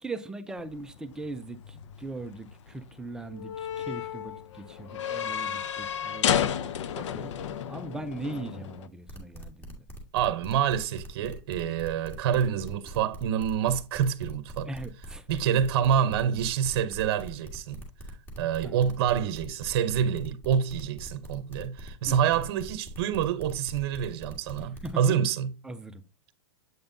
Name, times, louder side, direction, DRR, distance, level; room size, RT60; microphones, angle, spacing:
voice 1, 0.0-7.3 7.7-9.8 14.6-15.3 18.6-19.0 22.1-22.3 24.8-25.0 25.6-26.0, right 2 dB, 5° right, 0.4 m, -40 dB
sound 1, 0.6-8.9, left 9 dB, 75° left, 0.6 m, -33 dB
sound 2, 9.1-25.0, equal, 15° left, 1.7 m, -43 dB
voice 2, 10.1-14.7 15.3-17.8 18.4-25.5, right 8 dB, 50° right, 0.7 m, -27 dB
7.9 x 5.3 x 2.6 m
supercardioid pair, 155°, 15 cm